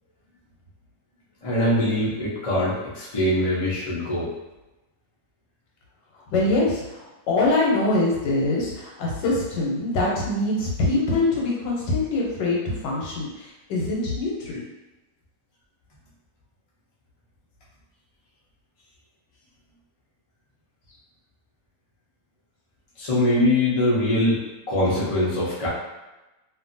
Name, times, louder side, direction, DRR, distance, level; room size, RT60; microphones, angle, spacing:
voice 1, 1.4-4.3 23.0-25.7, left 1 dB, 55° left, -7 dB, 0.3 m, -23 dB
voice 2, 6.3-14.6, left 2 dB, 80° left, -3 dB, 1.4 m, -24 dB
2.7 x 2.6 x 2.6 m, 1.0 s
omnidirectional pair, 1.9 m